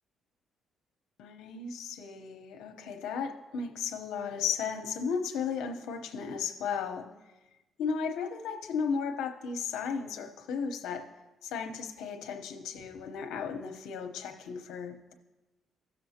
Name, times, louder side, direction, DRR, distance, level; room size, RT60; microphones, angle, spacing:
voice 1, 1.2-7.1 7.8-11.0 11.4-15.1, left 6 dB, 90° left, 4 dB, 0.9 m, -35 dB
17.0 x 6.8 x 2.8 m, 1.1 s
cardioid pair, 90°, 0 cm